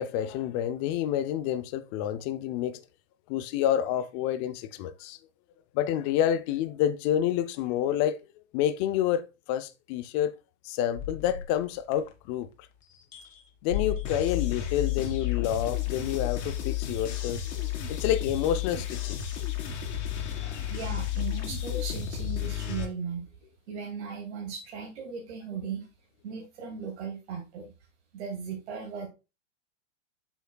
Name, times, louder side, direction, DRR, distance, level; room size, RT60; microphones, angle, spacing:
voice 1, 0.0-2.8 3.3-5.2 5.7-8.2 8.5-9.2 9.5-10.3 10.6-12.5 13.6-17.4 17.9-19.2 20.4-20.6, left 11 dB, 25° left, 0.4 m, -28 dB
sound 1, 11.0-12.5 12.9-16.0, left 10 dB, 85° left, 1.7 m, -38 dB
sound 2, 14.0-22.9, left 11 dB, 70° left, 2.1 m, -32 dB
voice 2, 20.7-23.3 23.7-25.9 26.2-27.7 28.1-29.1, right 6 dB, 65° right, 2.3 m, -37 dB
7.7 x 5.9 x 2.2 m
supercardioid pair, 150°, 37 cm